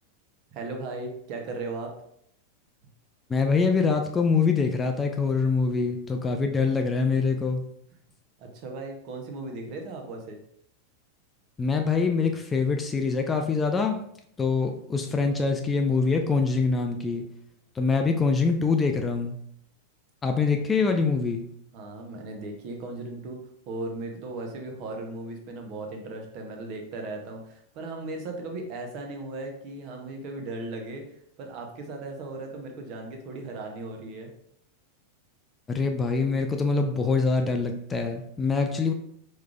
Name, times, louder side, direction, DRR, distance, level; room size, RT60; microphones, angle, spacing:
voice 1, 0.5-2.0 8.4-10.4 21.7-23.4 23.7-31.0 31.4-34.3, right 2 dB, 40° right, 2 dB, 0.8 m, -37 dB
voice 2, 3.3-7.6 11.6-14.0 14.4-17.2 17.8-19.4 20.2-21.4 35.7-38.9, left 4 dB, 15° left, 4 dB, 0.4 m, -24 dB
4.8 x 3.2 x 2.4 m, 0.70 s
figure-of-eight pair, 90°, 0 cm